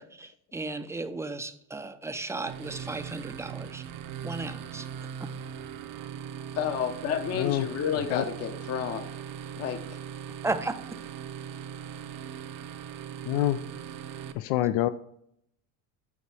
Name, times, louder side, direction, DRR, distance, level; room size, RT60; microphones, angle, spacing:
voice 1, 0.0-3.8 4.2-4.9 5.2-5.3 10.4-10.8, right 3 dB, 5° right, 9 dB, 0.4 m, -35 dB
sound 1, 2.4-14.3, right 8 dB, 55° right, 0.7 m, -40 dB
voice 2, 6.5-9.0 9.6-9.8, left 8 dB, 35° left, 8 dB, 0.7 m, -30 dB
voice 3, 7.4-7.7 7.9-8.2 13.3-13.6 14.3-14.9, left 14 dB, 85° left, 12 dB, 0.5 m, -26 dB
8.4 x 4.2 x 4.7 m, 0.71 s
cardioid pair, 120°, 41 cm